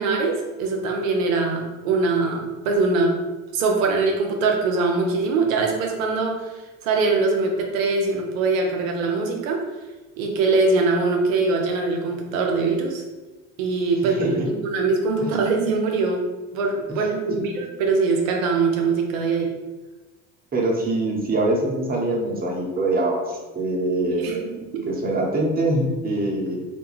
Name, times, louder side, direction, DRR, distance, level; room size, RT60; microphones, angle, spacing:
voice 1, 0.0-3.1 3.5-6.5 6.8-9.6 10.2-13.0 13.6-16.3 16.5-19.5 24.2-24.9, right 3 dB, 85° right, 1 dB, 0.5 m, -22 dB
voice 2, 14.0-14.5 15.2-15.3 16.9-17.0 20.5-26.7, right 2 dB, 25° right, -2 dB, 0.8 m, -24 dB
2.5 x 2.2 x 3.1 m, 1.2 s
hypercardioid pair, 70°, 39 cm